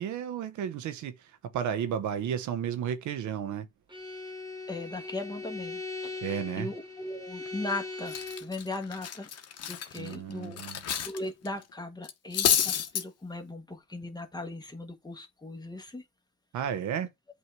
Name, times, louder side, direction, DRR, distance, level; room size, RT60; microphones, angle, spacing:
voice 1, 0.0-3.7 6.2-6.7 9.9-10.8 16.5-17.1, right 8 dB, 75° right, 0.7 m, -33 dB
Bowed string instrument, 3.9-8.6, left 3 dB, 15° right, 1.6 m, -40 dB
voice 2, 4.7-6.2 6.6-9.3 9.6-10.6 11.0-16.0, left 2 dB, 15° left, 1.3 m, -38 dB
Cutlery silverware, 7.5-7.7 8.1-11.2 11.4-11.6 12.0-13.0, left 8 dB, 55° left, 0.9 m, -29 dB
8.0 x 2.7 x 4.5 m
cardioid pair, 90°, 30 cm